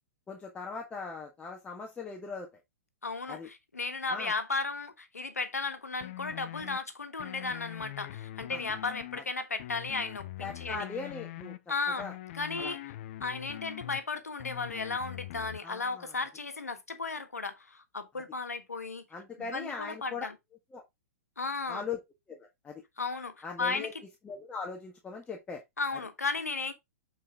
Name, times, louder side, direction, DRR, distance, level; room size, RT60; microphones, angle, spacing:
voice 1, 0.3-2.5 3.3-3.5 4.1-4.3 8.5-8.6 9.1-9.2 10.4-11.6 12.0-12.1 12.6-12.7 15.6-16.1 19.1-20.3 20.7-20.8 21.7-22.0 22.3-22.8 23.4-23.9 24.2-25.6 25.9-26.0, left 4 dB, 15° left, 1.6 m, -40 dB
voice 2, 3.0-10.9 11.7-12.1 12.3-12.8 13.2-19.0 19.4-20.3 21.4-21.8 23.0-24.0 25.8-26.7, left 4 dB, 85° left, 1.5 m, -35 dB
sound 1, 6.0-6.8 7.2-9.2 9.6-11.6 12.0-14.0 14.4-15.6, left 15 dB, 50° left, 0.7 m, -43 dB
8.7 x 4.6 x 3.7 m
figure-of-eight pair, 110°, 8 cm